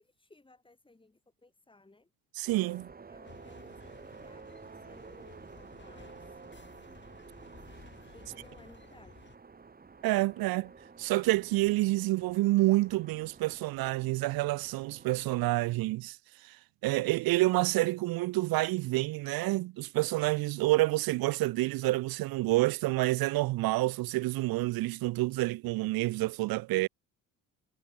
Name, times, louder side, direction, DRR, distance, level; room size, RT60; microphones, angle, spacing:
voice 1, 0.0-2.1 3.1-6.4 8.1-9.3, left 2 dB, 15° left, 1.9 m, -59 dB
sound 1, 2.4-15.7, right 5 dB, 25° right, 1.4 m, -51 dB
voice 2, 2.4-2.9 10.0-10.7 11.0-16.2 16.4-16.6 16.8-26.9, right 19 dB, 75° right, 0.5 m, -28 dB
sound 2, 3.2-9.4, left 5 dB, 30° left, 1.8 m, -56 dB
cardioid pair, 80°, 37 cm